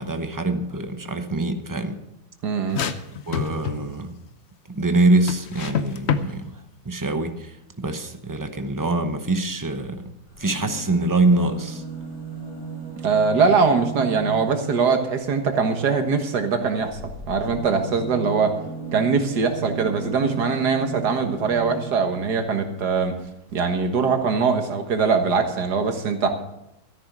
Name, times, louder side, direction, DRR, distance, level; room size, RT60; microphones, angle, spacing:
voice 1, 0.0-2.0 3.3-4.2 4.7-6.6 6.8-10.1 10.4-11.8, right 2 dB, 20° right, 7 dB, 0.6 m, -24 dB
voice 2, 2.4-2.8 13.0-17.0 17.3-18.5 18.9-23.1 23.5-26.3, right 5 dB, 65° right, 6 dB, 2.0 m, -22 dB
sound 1, 2.7-4.0 5.3-6.3, left 7 dB, 55° left, 0.7 m, -26 dB
sound 2, 10.3-15.1 16.8-22.3 23.2-23.3 23.5-23.6, right 3 dB, 20° left, 5.6 m, -36 dB
13.5 x 11.0 x 6.1 m, 0.86 s
omnidirectional pair, 2.0 m